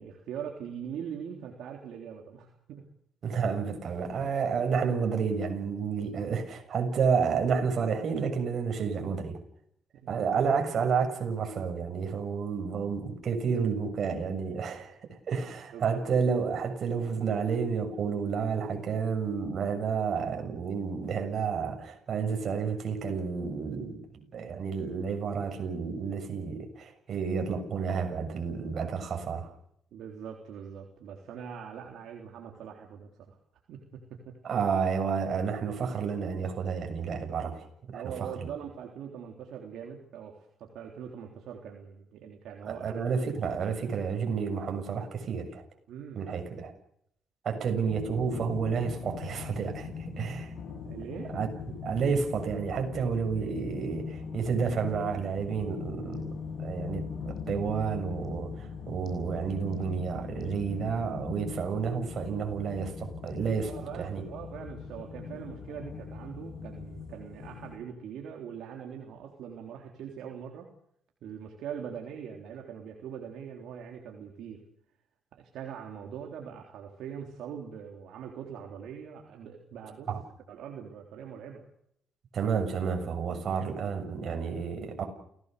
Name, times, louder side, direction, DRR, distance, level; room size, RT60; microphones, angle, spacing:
voice 1, 0.0-2.9 10.0-10.1 15.7-16.0 29.9-33.4 33.7-34.4 37.9-43.0 45.9-46.2 50.8-51.3 63.7-70.7 71.2-74.6 75.3-80.1 80.5-81.6, right 8 dB, 80° right, 1 dB, 3.6 m, -42 dB
voice 2, 3.2-9.4 10.1-15.0 15.3-29.5 34.4-38.1 38.4-38.5 42.7-45.6 46.1-46.7 47.4-50.5 51.3-51.5 51.8-56.3 56.6-63.7 64.0-64.3 80.1-80.2 82.3-85.0, right 6 dB, 55° right, 4 dB, 7.0 m, -30 dB
sound 1, 47.9-67.8, left 5 dB, 60° left, 7.2 m, -41 dB
29.5 x 18.0 x 6.8 m, 0.70 s
cardioid pair, 90°, 0 cm